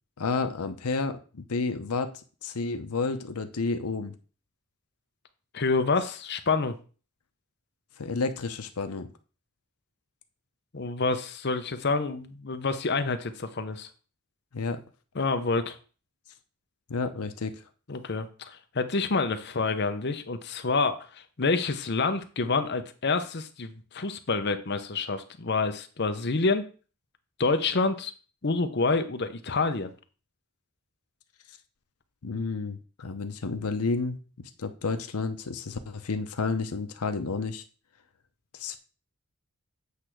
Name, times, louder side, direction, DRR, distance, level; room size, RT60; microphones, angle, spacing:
voice 1, 0.2-2.1 2.4-4.2 8.0-9.1 14.5-14.8 16.9-17.5 32.2-37.6 38.5-38.8, left 4 dB, 85° left, 8 dB, 0.8 m, -31 dB
voice 2, 5.5-6.8 10.7-13.9 15.2-15.8 17.9-26.7 27.4-28.1 28.4-29.9, left 3 dB, 50° left, 9 dB, 0.8 m, -28 dB
8.1 x 3.4 x 6.1 m, 0.37 s
head